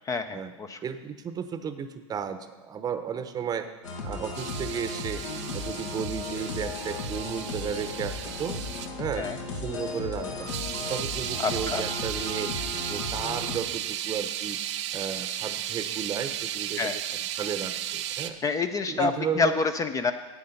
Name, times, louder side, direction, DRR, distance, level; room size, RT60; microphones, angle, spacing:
voice 1, 0.1-0.8 9.2-9.4 11.4-11.8 16.8-17.0 18.4-20.1, left 4 dB, 20° left, 10 dB, 0.5 m, -27 dB
voice 2, 0.8-3.7 4.0-5.2 5.5-8.6 9.0-10.5 10.9-12.5 12.9-14.6 14.9-16.9 17.4-18.4 18.9-19.5, right 7 dB, 25° right, 10 dB, 0.8 m, -33 dB
sound 1, 3.8-13.6, left 3 dB, 75° left, 1.8 m, -35 dB
sound 2, 4.3-8.9 10.5-18.3, right 11 dB, 70° right, 0.7 m, -34 dB
9.9 x 8.4 x 5.4 m, 1.2 s
hypercardioid pair, 110°, 16 cm